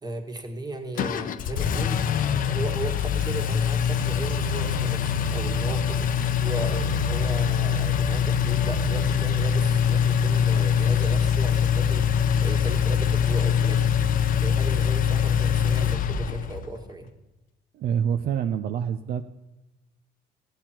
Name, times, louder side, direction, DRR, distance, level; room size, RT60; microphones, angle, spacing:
voice 1, 0.0-2.0 2.4-6.1 6.3-13.9 14.4-17.1, right 2 dB, 25° right, 4 dB, 1.7 m, -35 dB
Engine, 1.0-16.7, left 7 dB, 55° left, 0.7 m, -23 dB
voice 2, 17.7-19.2, right 8 dB, 60° right, 8 dB, 0.6 m, -26 dB
14.5 x 9.0 x 4.4 m, 1.0 s
cardioid pair, 110°, 17 cm